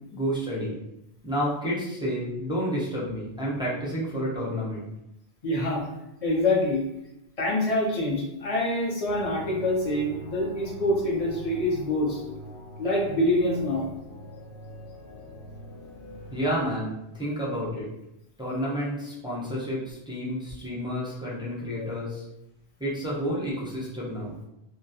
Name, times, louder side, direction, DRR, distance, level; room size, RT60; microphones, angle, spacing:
voice 1, 0.1-0.8 1.2-4.9 16.3-17.9 18.4-22.3 22.8-24.4, equal, 5° right, -7 dB, 0.3 m, -30 dB
voice 2, 5.4-5.9 6.2-6.8 7.4-12.2 12.8-13.9 21.8-21.9, left 1 dB, 45° left, -3 dB, 0.6 m, -25 dB
sound 1, 9.0-16.7, equal, 65° left, 0.9 m, -43 dB
2.3 x 2.1 x 2.7 m, 0.87 s
omnidirectional pair, 1.1 m